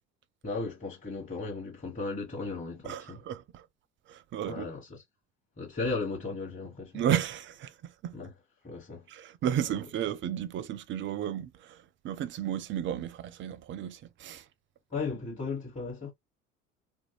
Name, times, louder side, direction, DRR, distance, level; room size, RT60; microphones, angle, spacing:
voice 1, 0.4-3.2 4.4-5.0 5.6-7.0 8.1-8.3 8.6-9.0 14.9-16.1, left 3 dB, 20° left, 1.1 m, -36 dB
voice 2, 2.8-3.6 4.1-4.7 6.9-8.2 9.1-14.4, right 10 dB, 30° right, 0.4 m, -33 dB
3.0 x 2.6 x 2.7 m
figure-of-eight pair, 60°, 40 cm